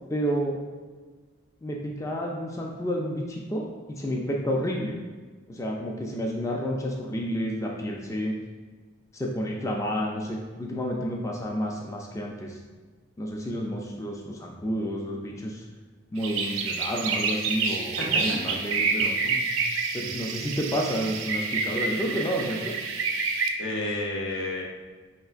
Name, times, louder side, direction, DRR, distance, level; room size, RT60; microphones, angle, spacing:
voice 1, 0.1-0.6 1.6-5.0 5.5-8.4 9.1-12.6 13.2-15.6 16.1-19.1 19.9-22.7, equal, 15° left, -1 dB, 0.3 m, -30 dB
sound 1, 16.2-23.5, right 4 dB, 80° right, 0.4 m, -28 dB
voice 2, 18.0-18.5 19.2-19.7 20.0-20.1 23.6-24.6, left 1 dB, 85° left, -1 dB, 0.7 m, -32 dB
4.4 x 3.0 x 2.4 m, 1.4 s
head